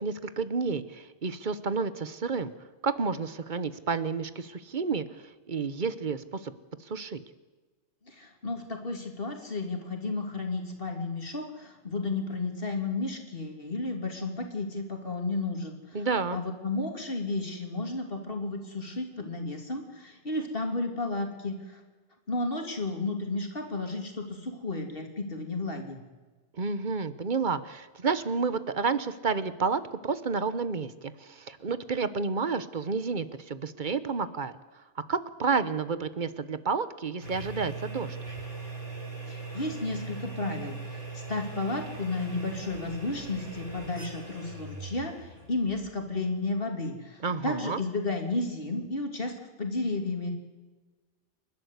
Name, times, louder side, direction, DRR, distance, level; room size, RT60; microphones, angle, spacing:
voice 1, 0.0-2.5 2.8-5.0 5.5-6.5 6.9-7.2 15.9-16.4 26.6-34.5 35.1-38.2 47.2-47.8, right 5 dB, 40° right, 14 dB, 1.1 m, -30 dB
voice 2, 8.1-15.7 16.3-21.8 22.3-26.0 39.2-50.3, left 2 dB, 50° left, 3 dB, 3.2 m, -33 dB
sound 1, 37.2-46.3, right 3 dB, 70° right, 8.4 m, -40 dB
29.5 x 12.0 x 8.2 m, 1.3 s
omnidirectional pair, 1.2 m